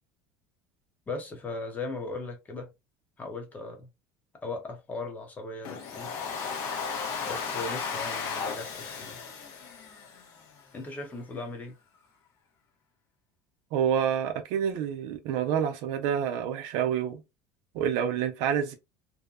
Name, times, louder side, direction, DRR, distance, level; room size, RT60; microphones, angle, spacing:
voice 1, 1.1-2.7 3.2-3.9 4.4-6.1 7.2-9.2 10.7-11.8, left 3 dB, 20° left, 0.9 m, -38 dB
Domestic sounds home sounds, 5.6-10.6, left 5 dB, 55° left, 0.9 m, -35 dB
voice 2, 13.7-17.2 17.7-18.8, right 8 dB, 75° right, 0.6 m, -28 dB
2.7 x 2.1 x 2.3 m
cardioid pair, 135°, 7 cm